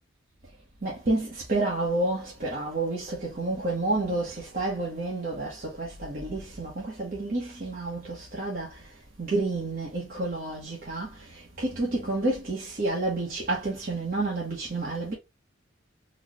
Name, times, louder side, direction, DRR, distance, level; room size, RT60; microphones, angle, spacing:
voice 1, 0.8-8.9 9.2-15.1, right 2 dB, 45° right, 1.0 m, -30 dB
4.0 x 2.3 x 3.0 m
head